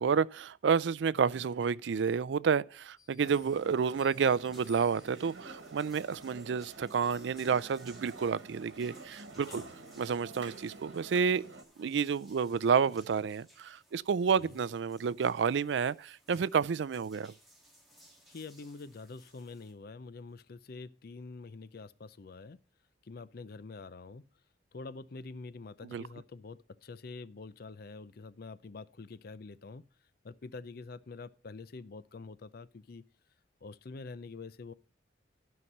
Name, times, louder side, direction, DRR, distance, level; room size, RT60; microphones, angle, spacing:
voice 1, 0.0-9.6 10.0-11.4 11.8-17.3 25.9-26.0, right 6 dB, 70° right, 0.4 m, -30 dB
sound 1, 3.0-5.5 6.1-8.5 9.0-9.1, left 3 dB, 15° left, 3.6 m, -62 dB
sound 2, 3.2-19.7, right 1 dB, ahead, 2.8 m, -61 dB
sound 3, 3.2-11.6, right 3 dB, 90° right, 1.6 m, -50 dB
voice 2, 18.3-22.6 23.0-24.2 24.7-29.8 30.2-33.1 33.6-34.7, left 3 dB, 55° left, 0.5 m, -46 dB
12.5 x 5.8 x 5.4 m
head